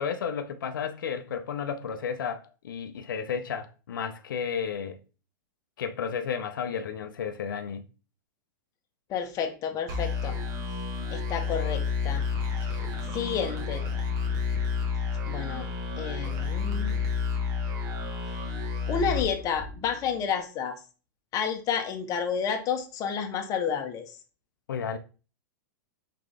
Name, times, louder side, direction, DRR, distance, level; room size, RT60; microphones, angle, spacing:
voice 1, 0.0-5.0 5.8-7.8 24.7-25.0, left 7 dB, 90° left, 0.5 m, -32 dB
voice 2, 9.1-10.4 11.1-12.2 13.1-14.0 15.3-15.7 16.0-16.9 18.9-20.8 21.3-24.1, left 7 dB, 30° left, 0.9 m, -30 dB
sound 1, 9.9-20.2, left 5 dB, 35° right, 1.2 m, -30 dB
3.9 x 3.7 x 3.3 m
hypercardioid pair, 130°, 11 cm